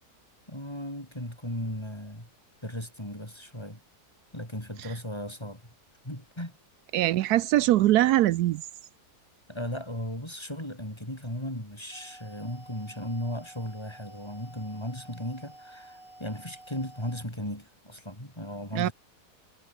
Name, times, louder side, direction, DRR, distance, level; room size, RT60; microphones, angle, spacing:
voice 1, 0.5-2.3 2.6-3.8 4.3-5.7 6.0-6.6 9.5-18.9, left 1 dB, 15° left, 6.8 m, -36 dB
voice 2, 6.9-8.6 18.7-18.9, right 14 dB, 80° right, 1.1 m, -22 dB
sound 1, 11.9-17.2, right 1 dB, 35° right, 6.0 m, -51 dB
omnidirectional pair, 1.7 m